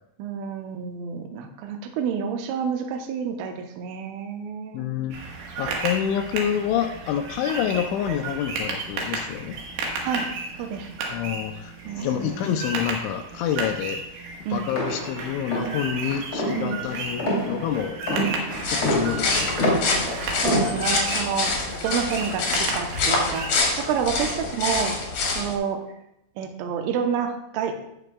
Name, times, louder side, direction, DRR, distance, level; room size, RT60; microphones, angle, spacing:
voice 1, 0.2-4.8 10.0-10.3 10.6-10.9 11.9-12.6 14.5-14.7 16.6-16.8 20.4-25.0 25.4-25.8 26.4-27.8, right 7 dB, 80° right, 4 dB, 3.3 m, -29 dB
voice 2, 4.7-5.2 5.6-9.6 11.1-14.0 14.5-18.0 18.7-19.8, left 9 dB, 85° left, 6 dB, 2.8 m, -28 dB
sound 1, 5.1-23.6, right 3 dB, 65° right, 3.1 m, -34 dB
sound 2, 14.7-21.2, equal, 35° left, 2.0 m, -27 dB
sound 3, 18.5-25.5, left 3 dB, 55° left, 2.5 m, -26 dB
17.0 x 6.2 x 2.3 m, 0.83 s
omnidirectional pair, 5.8 m